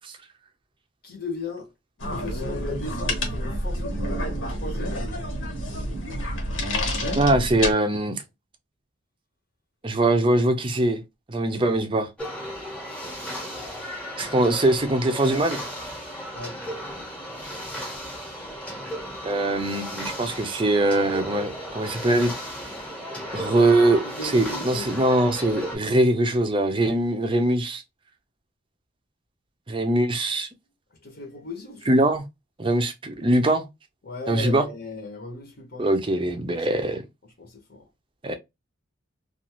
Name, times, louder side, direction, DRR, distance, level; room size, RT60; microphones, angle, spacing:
voice 1, 1.0-1.7 2.0-5.2 16.3-16.6 23.4-23.7 24.0-25.2 31.0-32.1 34.0-35.9 37.4-37.9, left 2 dB, 50° left, 0.8 m, -37 dB
sound 1, 2.0-7.7, left 1 dB, 80° left, 1.1 m, -28 dB
voice 2, 7.2-8.2 9.8-11.0 11.3-12.1 14.2-15.6 19.2-22.3 23.3-27.8 29.7-30.5 31.9-32.2 32.6-33.6 34.3-34.7 35.8-37.0 38.2-38.3, right 1 dB, 25° right, 0.5 m, -22 dB
sound 2, 12.2-25.8, equal, 5° left, 0.9 m, -35 dB
2.5 x 2.4 x 2.9 m
head